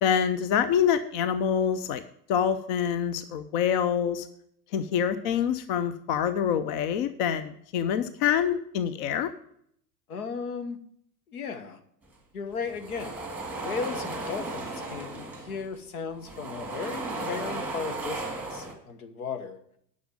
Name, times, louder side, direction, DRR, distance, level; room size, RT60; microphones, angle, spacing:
voice 1, 0.0-2.0 2.3-4.3 4.7-9.3, left 8 dB, 30° left, 12 dB, 0.5 m, -26 dB
voice 2, 10.1-10.8 11.3-11.8 12.3-13.2 13.6-19.6, left 5 dB, 60° left, 8 dB, 1.4 m, -36 dB
sound 1, 12.6-15.7 16.1-18.7, right 2 dB, 5° right, 2.0 m, -35 dB
10.0 x 6.4 x 7.1 m, 0.69 s
figure-of-eight pair, 90°, 48 cm